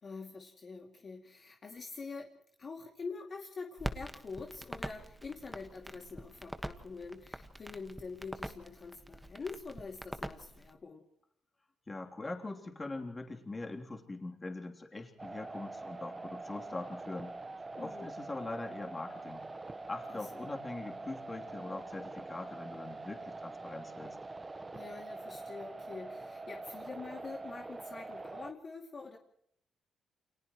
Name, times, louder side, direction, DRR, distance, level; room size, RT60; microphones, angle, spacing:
voice 1, 0.0-2.3 2.6-11.0 17.8-18.1 20.1-20.5 24.7-29.2, left 4 dB, 40° left, 1 dB, 2.5 m, -45 dB
Crackle, 3.8-10.7, right 1 dB, 5° right, 1.5 m, -44 dB
voice 2, 11.9-17.3 17.8-19.4 19.9-24.2, left 2 dB, 20° left, 2 dB, 3.3 m, -42 dB
sound 1, 15.2-28.5, right 3 dB, 20° right, 1.2 m, -45 dB
29.5 x 28.0 x 3.1 m, 0.68 s
cardioid pair, 115°, 0 cm